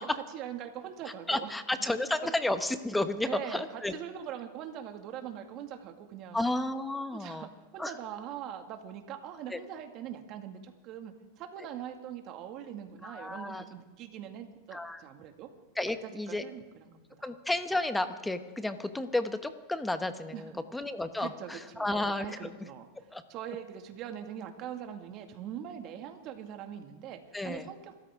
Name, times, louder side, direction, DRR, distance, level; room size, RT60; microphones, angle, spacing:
voice 1, 0.0-1.5 2.2-2.3 3.2-6.5 7.1-15.5 16.0-17.0 20.3-20.6 21.2-21.9 22.2-22.9 23.3-28.1, right 9 dB, 45° right, 5 dB, 2.1 m, -42 dB
voice 2, 1.3-4.0 6.3-7.5 7.8-7.9 9.5-9.6 13.0-13.6 14.7-15.0 15.8-16.4 17.2-22.5 23.1-23.2 27.3-27.7, left 2 dB, 5° left, 9 dB, 1.0 m, -32 dB
26.0 x 13.5 x 3.7 m, 1.3 s
supercardioid pair, 130°, 0 cm